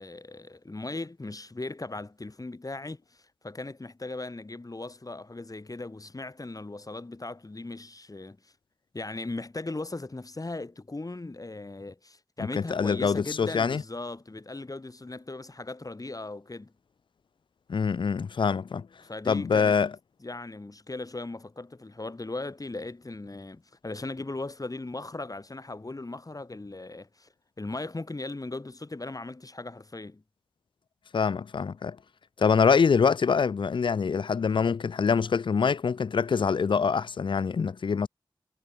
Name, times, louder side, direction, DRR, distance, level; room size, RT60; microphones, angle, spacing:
voice 1, 0.0-8.5 8.9-16.7 19.0-19.7 20.2-27.3 27.6-30.2, left 2 dB, 40° left, 2.5 m, -38 dB
voice 2, 12.6-13.8 17.7-18.9 19.3-19.9 31.1-32.0 32.4-38.1, left 5 dB, 65° left, 0.4 m, -25 dB
wide cardioid pair, 55°, 9 cm